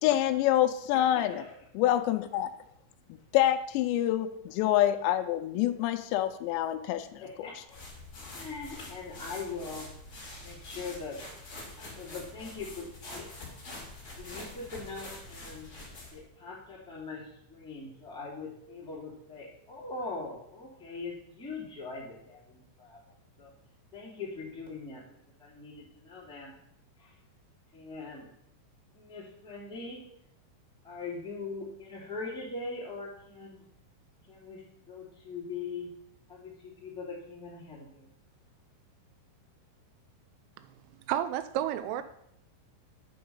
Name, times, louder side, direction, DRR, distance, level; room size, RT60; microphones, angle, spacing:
voice 1, 0.0-1.4 1.8-2.5 3.3-7.5, left 12 dB, 85° left, 7 dB, 2.6 m, -26 dB
voice 2, 0.9-1.6 7.2-7.8 8.2-9.9 10.4-11.2 11.8-13.3 13.7-15.7 16.1-23.0 23.4-23.5 23.9-25.0 25.4-26.5 27.0-27.1 27.7-28.3 28.9-30.0 30.8-33.6 34.3-35.9 36.3-38.1, left 4 dB, ahead, -6 dB, 1.5 m, -41 dB
sound 1, 7.7-16.3, left 2 dB, 30° left, 1.9 m, -45 dB
voice 3, 41.1-42.0, right 11 dB, 90° right, 11 dB, 3.1 m, -30 dB
8.7 x 5.5 x 5.5 m, 0.72 s
omnidirectional pair, 5.5 m